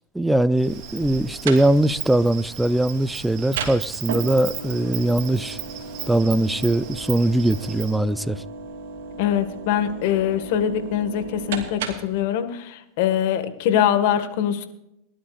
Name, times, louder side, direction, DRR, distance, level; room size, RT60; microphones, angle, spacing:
voice 1, 0.1-5.6 6.1-8.4, right 1 dB, 5° right, 0.6 m, -21 dB
Insect, 0.6-8.0, right 9 dB, 50° right, 3.3 m, -36 dB
sound 1, 1.0-12.2, right 5 dB, 80° right, 2.7 m, -36 dB
voice 2, 9.2-14.7, left 10 dB, 65° left, 1.9 m, -23 dB
22.5 x 12.0 x 2.6 m
supercardioid pair, 120°, 0 cm